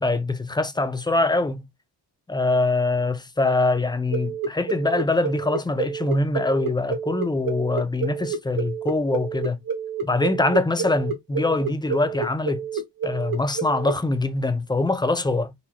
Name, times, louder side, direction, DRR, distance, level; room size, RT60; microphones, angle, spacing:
voice 1, 0.0-1.6 2.3-9.6 10.0-12.7 13.0-15.5, left 2 dB, 10° left, 0.4 m, -23 dB
sound 1, 4.1-13.9, right 6 dB, 55° right, 1.5 m, -29 dB
4.0 x 2.9 x 2.8 m
wide cardioid pair, 110°, 41 cm